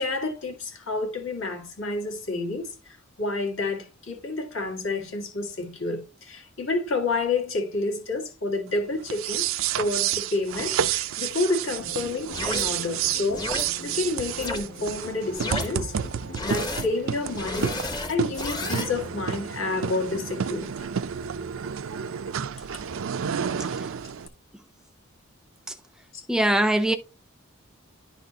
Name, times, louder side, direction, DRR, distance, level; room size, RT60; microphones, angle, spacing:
voice 1, 0.0-9.5 9.8-16.0 16.4-20.9 26.1-26.2, left 3 dB, 70° left, 1.8 m, -29 dB
sound 1, 9.0-24.3, right 8 dB, 75° right, 0.4 m, -30 dB
sound 2, 11.7-19.1, equal, 50° left, 1.3 m, -43 dB
sound 3, 12.3-12.6 13.3-13.6 14.4-14.6 15.3-15.7 16.3-16.9 17.3-18.9, left 2 dB, 20° left, 0.7 m, -31 dB
voice 2, 26.3-26.9, right 1 dB, 5° right, 0.3 m, -21 dB
11.0 x 4.1 x 2.8 m
head